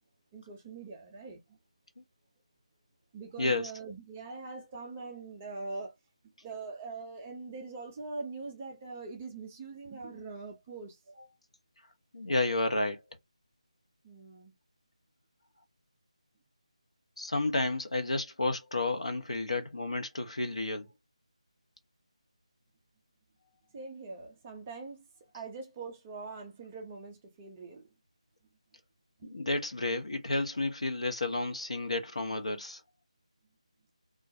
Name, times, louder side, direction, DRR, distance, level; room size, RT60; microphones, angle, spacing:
voice 1, 0.3-1.6 3.1-5.9 6.4-11.3 14.0-14.5 23.7-25.0 25.3-27.9 29.2-29.5, right 4 dB, 15° right, 0.4 m, -43 dB
voice 2, 3.4-3.7 12.1-13.0 17.2-20.9 29.2-32.8, left 2 dB, 65° left, 0.8 m, -31 dB
2.3 x 2.1 x 2.6 m
figure-of-eight pair, 160°, 4 cm